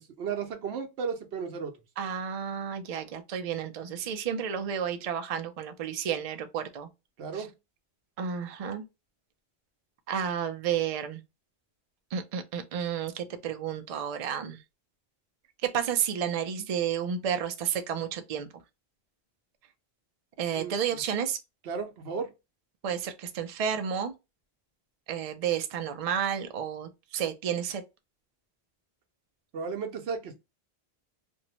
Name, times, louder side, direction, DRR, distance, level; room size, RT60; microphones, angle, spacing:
voice 1, 0.0-1.7 7.2-7.5 20.6-20.7 21.6-22.3 29.5-30.4, right 6 dB, 75° right, 0.9 m, -34 dB
voice 2, 2.0-6.9 7.3-7.5 8.2-8.8 10.1-11.2 12.1-14.6 15.6-18.5 20.4-21.4 22.8-24.1 25.1-27.8, right 8 dB, 60° right, 0.4 m, -31 dB
2.6 x 2.0 x 2.8 m
omnidirectional pair, 1.1 m